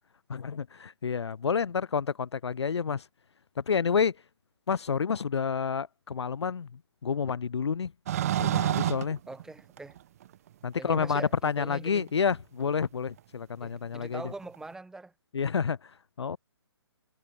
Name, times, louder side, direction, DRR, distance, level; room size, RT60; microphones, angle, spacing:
voice 1, 0.3-3.1 3.6-4.2 4.7-7.9 8.4-9.2 10.6-14.3 15.3-16.4, left 6 dB, 80° left, 0.5 m, -29 dB
sound 1, 8.1-10.3 11.1-11.2 12.6-12.7 14.4-14.5, right 12 dB, 35° right, 0.4 m, -28 dB
voice 2, 9.3-10.0 10.8-12.1 13.6-15.1, right 2 dB, 5° right, 2.8 m, -42 dB
figure-of-eight pair, 140°, 14 cm